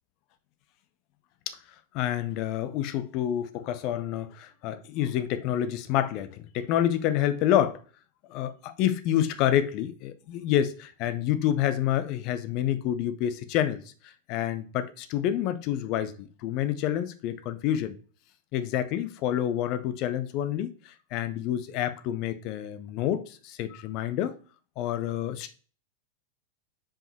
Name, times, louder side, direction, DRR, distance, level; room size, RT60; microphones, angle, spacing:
voice 1, 1.9-7.8 8.3-17.9 18.5-24.4 24.8-25.5, left 11 dB, 40° left, 0.7 m, -28 dB
5.1 x 5.1 x 4.2 m
figure-of-eight pair, 90°, 0 cm